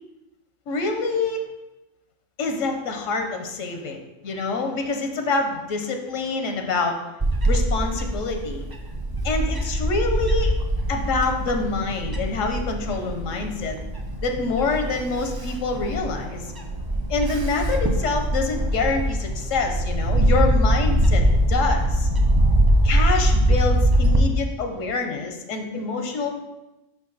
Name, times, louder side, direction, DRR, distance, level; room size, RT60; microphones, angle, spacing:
voice 1, 0.7-1.5 2.4-4.0 4.2-7.0 7.5-8.7 9.2-10.5 10.9-13.7 14.2-16.5 17.1-21.2 21.5-22.1 22.8-26.4, left 3 dB, 85° left, 4 dB, 1.2 m, -26 dB
Bird / Wind, 7.2-24.2, right 1 dB, 40° right, 0.3 m, -22 dB
5.6 x 5.1 x 4.0 m, 0.99 s
omnidirectional pair, 1.3 m